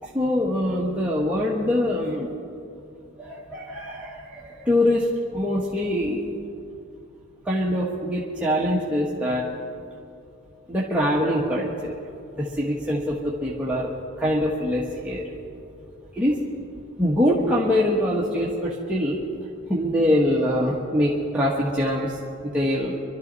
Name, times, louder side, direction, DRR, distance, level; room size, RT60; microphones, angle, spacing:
voice 1, 0.0-2.3 3.2-6.2 7.4-9.5 10.7-11.9 12.4-15.3 16.1-16.5 17.0-19.2 19.7-23.0, left 1 dB, 5° right, -7 dB, 1.3 m, -24 dB
25.0 x 12.5 x 4.1 m, 2.5 s
head